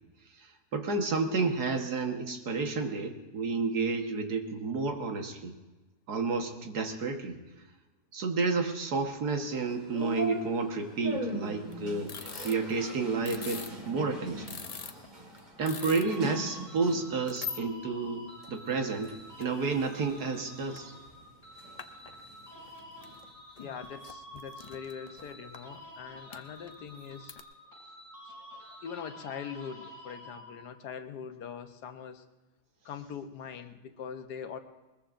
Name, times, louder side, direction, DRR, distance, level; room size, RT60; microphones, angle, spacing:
voice 1, 0.4-5.5 6.1-7.4 8.1-12.2 12.4-14.6 15.6-20.9, right 4 dB, 75° right, 4 dB, 1.9 m, -31 dB
sound 1, 9.4-17.2 17.7-18.5 18.9-21.8 22.1-23.3, right 1 dB, 30° right, 1.9 m, -41 dB
sound 2, 11.7-13.9 14.2-14.3 14.5-16.2 16.5-16.6 17.3-17.6 18.2-18.3 18.6-19.4 19.9-20.0 20.6-20.8 21.1-21.2 21.8-22.3 22.8-23.2 23.5-25.6 26.3-27.4, left 6 dB, 65° left, 0.3 m, -43 dB
sound 3, 15.6-30.8, equal, 10° left, 6.7 m, -49 dB
voice 2, 23.6-27.4 28.5-32.2 32.8-34.6, left 7 dB, 85° left, 8 dB, 1.5 m, -42 dB
21.5 x 21.0 x 2.6 m, 1.1 s
omnidirectional pair, 1.7 m